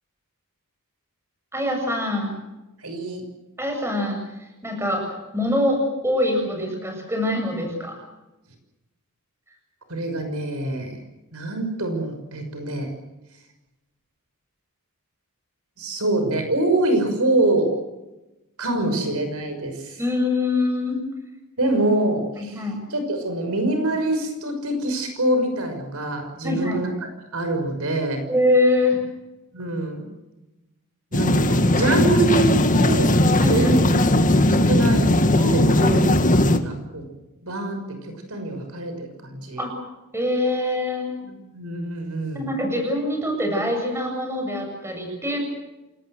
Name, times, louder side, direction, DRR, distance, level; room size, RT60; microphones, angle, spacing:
voice 1, 1.5-2.3 3.6-4.2 4.6-5.1 5.3-8.0 20.0-21.0 22.4-22.8 26.4-26.8 28.3-29.0 33.4-33.7 35.9-36.0 39.6-39.7 40.1-41.1 42.3-45.4, left 1 dB, 10° right, 3 dB, 7.6 m, -24 dB
voice 2, 2.8-3.2 9.9-11.0 11.3-12.9 15.8-17.7 18.6-20.0 21.6-26.9 27.3-28.2 29.5-30.1 31.1-33.8 34.5-36.4 36.6-37.1 37.4-39.6 41.2-42.5, right 2 dB, 70° right, 6 dB, 6.1 m, -25 dB
sound 1, 31.1-36.6, left 1 dB, 35° left, 1.9 m, -18 dB
29.0 x 19.5 x 7.9 m, 1.0 s
head